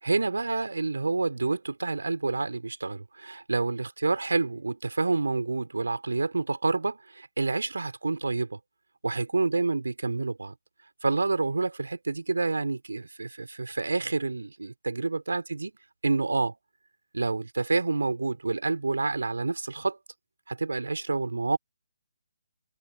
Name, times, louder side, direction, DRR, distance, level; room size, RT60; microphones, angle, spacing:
voice 1, 0.0-8.6 9.0-10.5 11.0-15.7 16.0-16.5 17.1-20.0 20.5-21.6, right 3 dB, 75° right, 4.2 m, -28 dB
figure-of-eight pair, 145°, 0 cm